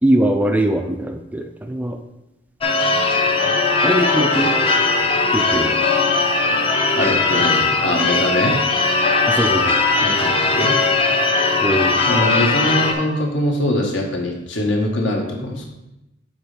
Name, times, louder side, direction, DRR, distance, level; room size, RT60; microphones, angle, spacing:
voice 1, 0.0-2.0 3.8-4.5 5.3-5.8 9.3-10.1 11.6-11.9, right 1 dB, 10° right, 5 dB, 0.4 m, -21 dB
Church bell / Car / Alarm, 2.6-12.9, left 3 dB, 30° left, 0.6 m, -18 dB
voice 2, 6.9-8.6 10.0-10.8 12.1-15.7, left 1 dB, 70° left, 0 dB, 1.4 m, -22 dB
7.3 x 4.1 x 5.0 m, 0.91 s
head